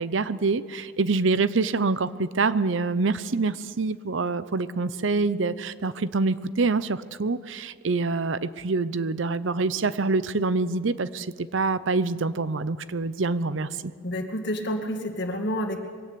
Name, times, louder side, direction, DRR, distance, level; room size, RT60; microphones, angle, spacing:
voice 1, 0.0-13.9, right 3 dB, 70° right, 15 dB, 0.7 m, -26 dB
voice 2, 14.0-15.8, equal, 55° left, 4 dB, 2.2 m, -29 dB
22.5 x 17.0 x 8.4 m, 2.2 s
head